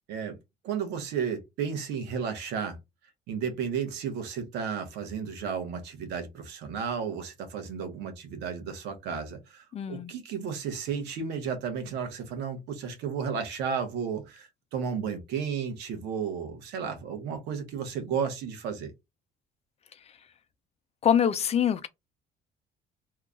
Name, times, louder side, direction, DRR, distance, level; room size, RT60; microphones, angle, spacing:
voice 1, 0.6-2.8 3.3-18.9, right 6 dB, 85° right, 1.0 m, -33 dB
voice 2, 9.7-10.1 21.0-21.9, left 8 dB, 40° left, 0.5 m, -24 dB
2.9 x 2.3 x 3.6 m
cardioid pair, 110°, 17 cm